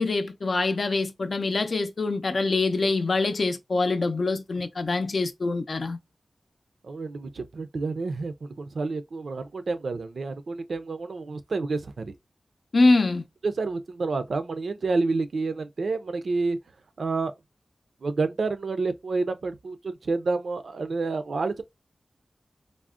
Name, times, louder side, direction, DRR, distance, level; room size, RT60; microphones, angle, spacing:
voice 1, 0.0-6.0 12.7-13.3, left 3 dB, 60° left, 0.5 m, -24 dB
voice 2, 6.8-12.1 13.4-16.6 17.0-17.3 18.0-21.6, right 3 dB, 80° right, 0.4 m, -29 dB
3.6 x 2.1 x 2.4 m
wide cardioid pair, 95°, 0 cm